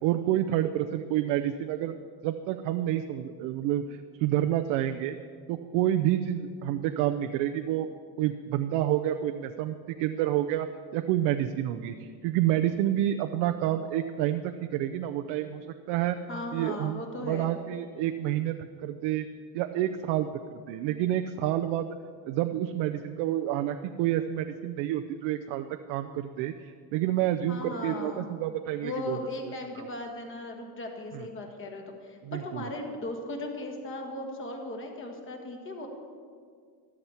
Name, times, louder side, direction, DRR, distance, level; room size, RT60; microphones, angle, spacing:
voice 1, 0.0-2.0 2.2-5.2 5.5-7.9 8.2-10.7 10.9-16.2 16.5-18.6 18.8-19.3 19.5-21.9 22.2-29.9 31.1-31.3 32.2-32.7, right 12 dB, 80° right, 7 dB, 0.7 m, -29 dB
voice 2, 16.3-17.6 27.5-28.3 28.8-35.9, left 2 dB, 30° left, 2 dB, 1.7 m, -37 dB
13.5 x 12.5 x 4.4 m, 2.1 s
cardioid pair, 160°, 42 cm